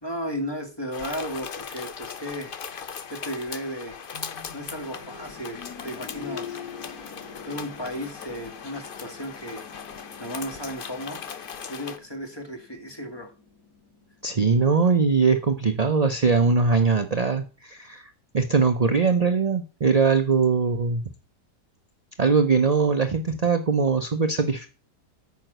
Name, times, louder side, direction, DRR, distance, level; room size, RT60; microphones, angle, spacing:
voice 1, 0.0-2.6 3.1-4.0 4.5-6.6 7.4-9.7 10.2-11.2 11.7-13.3, equal, 15° left, 4 dB, 1.8 m, -34 dB
sound 1, 0.9-12.0, left 7 dB, 45° left, 0.7 m, -39 dB
sound 2, 4.1-14.9 15.2-15.3 16.2-16.3, left 6 dB, 65° left, 2.3 m, -45 dB
voice 2, 14.2-18.1 18.3-21.0 22.2-24.7, right 5 dB, 40° right, 7 dB, 0.5 m, -21 dB
9.0 x 6.0 x 7.9 m, 0.35 s
omnidirectional pair, 1.8 m